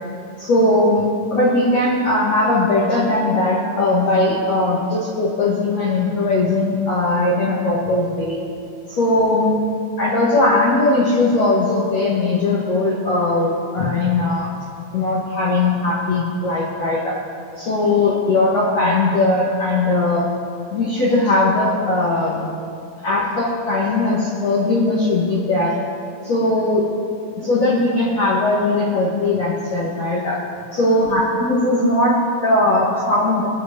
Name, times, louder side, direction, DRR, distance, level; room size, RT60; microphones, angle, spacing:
voice 1, 0.4-8.4 8.9-9.6 10.0-14.5 14.9-17.2 17.6-20.3 20.7-22.5 23.0-25.8 26.2-26.9 27.4-30.4 30.7-33.5, left 2 dB, 55° left, -6 dB, 2.1 m, -19 dB
22.0 x 7.8 x 5.3 m, 2.5 s
omnidirectional pair, 5.2 m